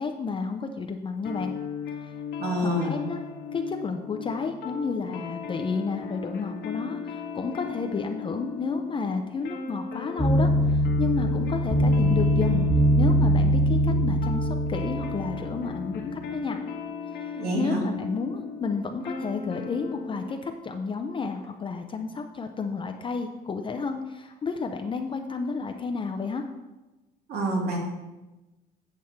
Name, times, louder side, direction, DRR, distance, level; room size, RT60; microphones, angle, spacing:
voice 1, 0.0-1.5 2.0-2.1 2.6-3.2 3.5-12.6 13.0-16.6 17.1-26.4, left 4 dB, 30° left, 5 dB, 0.6 m, -31 dB
sound 1, 1.2-20.4, left 6 dB, 80° left, 1.5 m, -37 dB
voice 2, 2.4-3.0 17.3-17.8 27.3-27.8, right 1 dB, 70° right, 0 dB, 2.3 m, -27 dB
sound 2, 10.2-15.8, equal, 10° right, 1.4 m, -22 dB
8.5 x 7.0 x 4.4 m, 1.1 s
cardioid pair, 110°, 17 cm